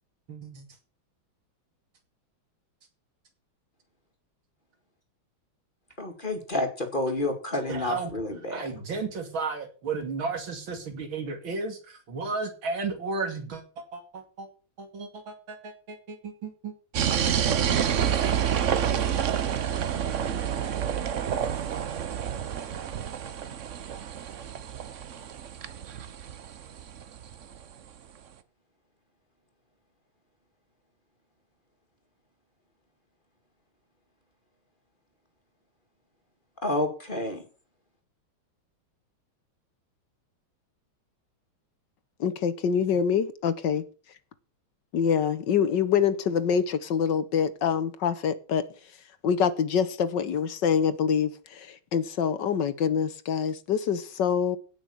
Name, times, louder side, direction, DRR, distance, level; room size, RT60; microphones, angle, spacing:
voice 1, 0.3-0.6 7.7-8.1 8.5-14.5 14.8-16.7 17.0-17.3, right 4 dB, 70° right, 3.3 m, -34 dB
voice 2, 6.0-8.7 36.6-37.4, left 2 dB, 25° left, 2.2 m, -29 dB
sound 1, 16.9-27.6, right 8 dB, 50° right, 0.9 m, -28 dB
voice 3, 42.2-43.8 44.9-48.6 49.2-54.6, left 7 dB, 65° left, 1.6 m, -25 dB
16.5 x 6.2 x 7.0 m
omnidirectional pair, 2.3 m